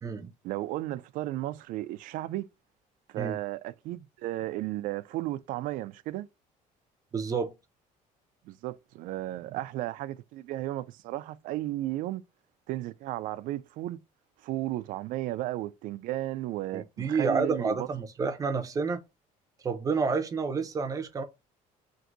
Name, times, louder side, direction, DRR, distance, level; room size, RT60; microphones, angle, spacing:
voice 1, 0.4-2.5 3.1-6.3 8.5-12.2 12.7-14.0 14.4-17.9, right 15 dB, 70° right, 0.4 m, -34 dB
voice 2, 7.1-7.5 16.7-19.0 19.6-21.2, right 4 dB, 25° right, 0.6 m, -29 dB
5.8 x 2.6 x 2.6 m
cardioid pair, 150°, 14 cm